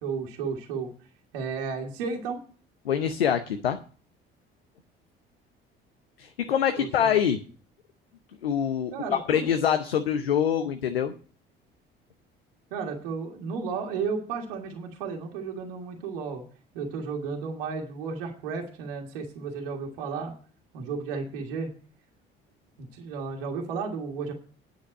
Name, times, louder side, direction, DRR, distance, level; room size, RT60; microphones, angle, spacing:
voice 1, 0.0-0.9 1.3-2.4 6.8-7.1 8.9-9.5 12.7-16.4 16.7-20.3 20.7-21.7 22.8-24.3, right 5 dB, 70° right, 0 dB, 1.8 m, -33 dB
voice 2, 2.9-3.8 6.2-7.4 8.4-11.1, left 8 dB, 80° left, 9 dB, 0.7 m, -25 dB
9.9 x 5.8 x 8.4 m, 0.40 s
figure-of-eight pair, 50°, 29 cm